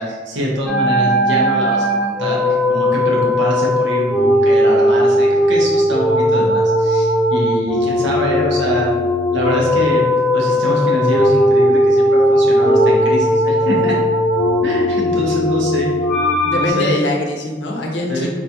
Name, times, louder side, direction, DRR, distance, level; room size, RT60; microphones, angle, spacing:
voice 1, 0.0-8.9 9.3-10.0 10.3-14.0 14.6-15.9 16.5-16.9 18.1-18.3, equal, 90° right, -3 dB, 0.8 m, -23 dB
sound 1, 0.7-16.7, equal, ahead, 0.4 m, -16 dB
voice 2, 16.4-18.3, left 2 dB, 75° left, -1 dB, 0.6 m, -22 dB
4.0 x 2.3 x 2.8 m, 1.4 s
head